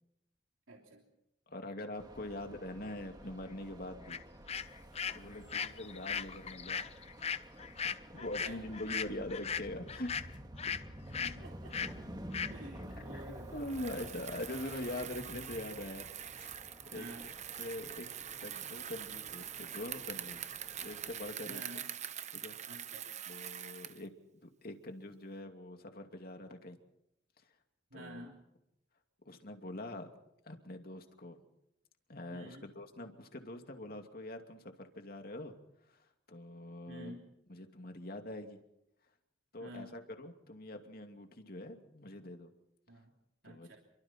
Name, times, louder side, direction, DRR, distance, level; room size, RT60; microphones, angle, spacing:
voice 1, 0.7-1.0 5.3-5.6 8.1-8.6 11.1-11.7 12.5-14.0 16.9-17.3 21.5-22.0 22.7-23.1 27.9-28.5 32.3-32.7 36.9-37.3 39.6-40.0 42.9-43.1 43.4-43.8, right 1 dB, 80° right, 0 dB, 3.3 m, -51 dB
voice 2, 1.5-4.2 5.1-6.9 8.1-10.1 10.7-10.8 13.1-13.2 13.5-16.1 16.4-16.6 16.9-17.3 17.6-18.1 18.4-20.5 20.8-21.6 22.3-22.6 23.3-24.1 24.4-26.8 27.9-28.3 29.3-30.1 30.4-31.5 32.1-35.5 35.9-37.2 37.5-38.6 39.5-42.5 43.4-43.8, left 1 dB, 50° left, 5 dB, 2.6 m, -43 dB
sound 1, 2.0-21.3, equal, 20° right, 1.9 m, -51 dB
sound 2, 4.1-4.2 4.5-10.8 11.1-11.3 11.7-11.9 12.3-12.5, left 7 dB, 30° left, 0.8 m, -38 dB
Bicycle, 13.6-24.1, right 10 dB, 35° right, 0.9 m, -44 dB
29.5 x 24.0 x 4.5 m, 0.84 s
head